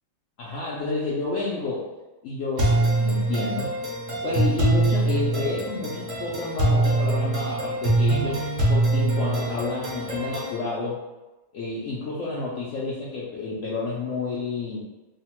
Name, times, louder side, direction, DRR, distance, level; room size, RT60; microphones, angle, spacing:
voice 1, 0.4-1.9 2.2-3.7 4.2-11.0 11.5-14.8, left 3 dB, 85° left, -7 dB, 0.6 m, -30 dB
sound 1, 2.6-10.6, right 2 dB, 60° right, 0.9 m, -24 dB
3.0 x 2.0 x 2.9 m, 1.1 s
omnidirectional pair, 1.9 m